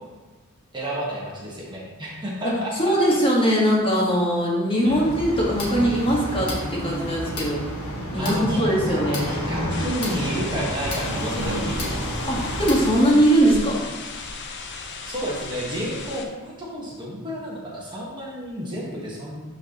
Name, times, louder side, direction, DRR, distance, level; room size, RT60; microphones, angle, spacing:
voice 1, 0.7-2.7 4.8-4.9 8.2-8.6 8.9-9.0 9.3-12.1 15.0-19.4, equal, 20° right, -5 dB, 1.3 m, -31 dB
voice 2, 2.4-7.6 8.1-9.2 12.3-13.8, equal, 25° left, -4 dB, 1.5 m, -21 dB
sound 1, 4.8-12.9, equal, 65° left, 1.5 m, -30 dB
sound 2, 9.7-16.3, left 4 dB, 50° left, 0.7 m, -35 dB
11.5 x 4.0 x 2.9 m, 1.2 s
head